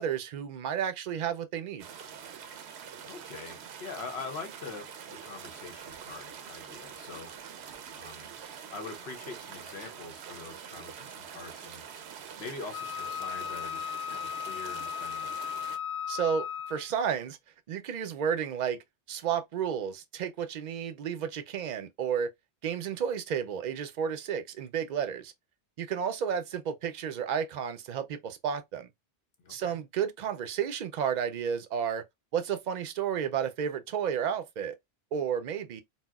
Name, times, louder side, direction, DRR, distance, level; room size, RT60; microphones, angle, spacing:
voice 1, 0.0-1.9 16.1-17.4 17.7-18.8 19.1-22.3 22.6-25.3 25.8-28.9 29.5-32.0 32.3-34.7 35.1-35.8, right 8 dB, 55° right, 0.5 m, -32 dB
sound 1, 1.8-15.8, right 7 dB, 80° right, 0.8 m, -45 dB
voice 2, 2.6-7.3 7.9-8.3 8.7-11.8 12.4-15.3 29.4-29.8, left 4 dB, 75° left, 1.1 m, -44 dB
Wind instrument woodwind instrument, 12.7-16.9, left 9 dB, 50° left, 0.9 m, -36 dB
4.1 x 2.0 x 2.2 m
omnidirectional pair, 1.1 m